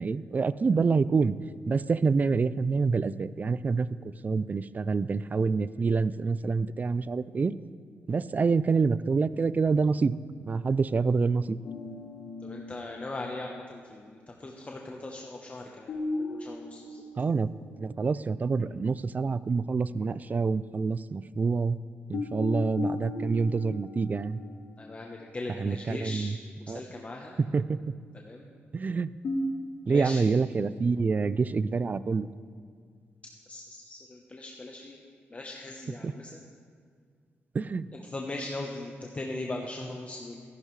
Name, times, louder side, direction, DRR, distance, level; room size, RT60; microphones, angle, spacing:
voice 1, 0.0-1.3 1.7-3.9 4.2-7.6 8.1-10.2 10.5-11.6 17.2-17.5 17.8-21.8 22.1-24.4 25.6-26.4 26.7-26.8 27.4-27.8 28.7-29.1 29.9-32.3 36.0-36.1 37.5-37.9, right 4 dB, 35° right, 17 dB, 0.3 m, -27 dB
sound 1, 11.6-13.7 15.9-18.0 18.4-18.5 22.1-25.3 29.2-30.0, left 2 dB, 60° left, 1.4 m, -36 dB
voice 2, 12.4-15.9 16.3-17.0 24.8-26.3 26.7-27.3 28.1-28.4 29.9-30.2 33.5-35.0 35.3-36.3 37.9-40.4, left 2 dB, 30° left, 1 dB, 0.9 m, -39 dB
14.0 x 10.5 x 3.2 m, 2.1 s
cardioid pair, 75°, 5 cm